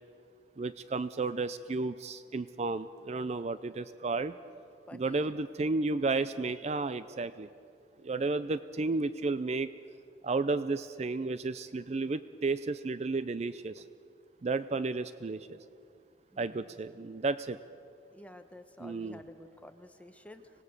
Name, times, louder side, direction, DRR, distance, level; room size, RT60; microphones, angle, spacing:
voice 1, 0.6-4.4 4.9-7.5 8.0-9.7 10.2-13.8 14.4-15.6 16.4-17.6 18.8-19.2, right 3 dB, 35° right, 13 dB, 0.4 m, -32 dB
voice 2, 4.9-5.3 16.3-16.8 18.1-20.5, left 1 dB, 10° left, 7 dB, 1.0 m, -51 dB
25.5 x 18.0 x 6.6 m, 2.4 s
head